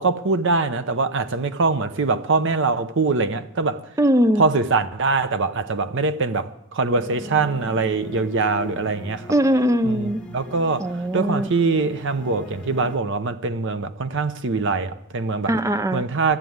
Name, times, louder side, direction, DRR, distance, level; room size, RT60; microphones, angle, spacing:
voice 1, 0.0-3.8 4.4-9.3 9.8-15.5 15.9-16.4, right 3 dB, 55° right, 0.7 m, -23 dB
voice 2, 4.0-4.5 9.3-10.2 10.8-11.5 15.5-16.0, equal, 15° right, 0.5 m, -20 dB
sound 1, 6.9-13.0, left 1 dB, 5° left, 1.1 m, -40 dB
13.0 x 7.5 x 9.3 m
head